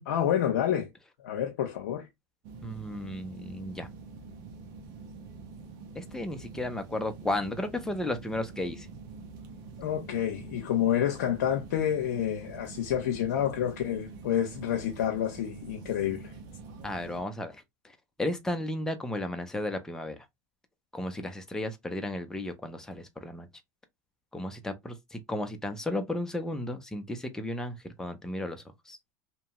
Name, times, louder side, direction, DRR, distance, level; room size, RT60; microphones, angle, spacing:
voice 1, 0.1-0.9 1.2-2.1 9.8-16.4, left 10 dB, 90° left, 0.5 m, -29 dB
sound 1, 2.4-17.2, right 4 dB, 60° right, 0.8 m, -46 dB
voice 2, 2.6-3.9 6.0-8.9 16.8-17.6 18.2-20.2 20.9-23.5 24.3-29.0, left 1 dB, 5° left, 0.6 m, -34 dB
2.8 x 2.2 x 2.8 m
supercardioid pair, 105°, 9 cm